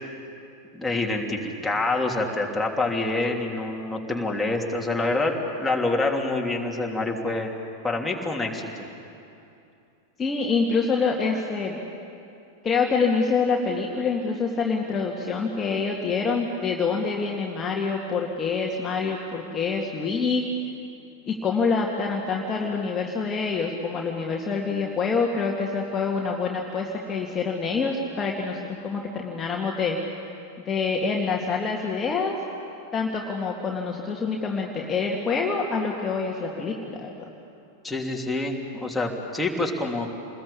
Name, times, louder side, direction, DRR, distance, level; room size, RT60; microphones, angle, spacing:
voice 1, 0.7-5.3 5.6-7.5 7.8-8.8 37.8-40.1, left 2 dB, 5° left, -1 dB, 3.2 m, -26 dB
voice 2, 10.2-11.8 12.6-20.4 21.3-30.2 30.7-32.4 32.9-37.3, left 4 dB, 20° left, -1 dB, 2.2 m, -26 dB
28.5 x 21.0 x 8.6 m, 2.7 s
figure-of-eight pair, 90°, 0 cm